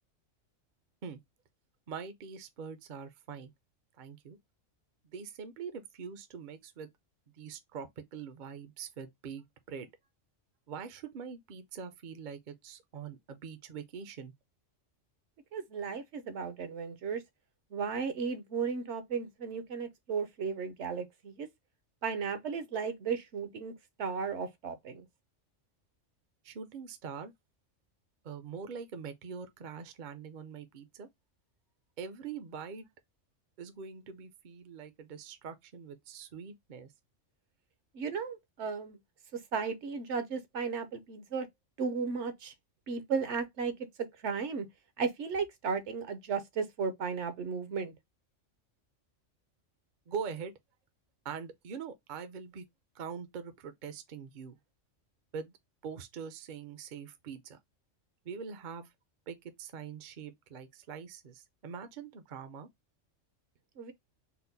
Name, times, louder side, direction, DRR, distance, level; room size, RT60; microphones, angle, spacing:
voice 1, 1.9-3.5 4.0-4.4 5.1-6.9 7.4-9.9 10.7-14.3 26.4-27.3 28.2-31.1 32.0-32.9 33.6-36.9 50.1-50.5 51.2-52.7 52.9-54.6 55.3-55.5 55.8-57.6 58.2-58.9 59.3-62.7, right 6 dB, 50° right, 0.6 m, -43 dB
voice 2, 15.5-17.2 17.7-21.5 22.0-23.7 24.0-25.0 37.9-39.0 39.5-41.5 41.8-42.5 42.9-43.7 44.2-44.7 45.0-47.9 63.8-63.9, right 5 dB, 65° right, 1.0 m, -35 dB
4.3 x 2.1 x 3.9 m
omnidirectional pair, 1.3 m